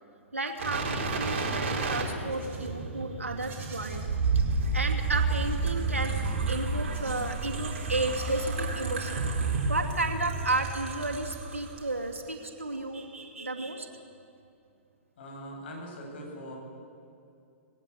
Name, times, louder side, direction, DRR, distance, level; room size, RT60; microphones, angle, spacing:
voice 1, 0.3-4.0 4.7-6.2 6.5-9.3 9.7-13.9, right 2 dB, 80° right, 3 dB, 2.6 m, -33 dB
sound 1, 0.6-11.8 12.2-12.3, right 3 dB, 50° right, 4.2 m, -31 dB
Livestock farm animals working animals, 2.0-2.8 3.3-4.1 5.2-5.7 6.8-7.4 8.0-9.0, right 4 dB, 25° right, 5.2 m, -51 dB
voice 2, 15.2-16.6, equal, 50° left, 0 dB, 7.5 m, -41 dB
19.5 x 17.5 x 8.5 m, 2.5 s
figure-of-eight pair, 115°, 7 cm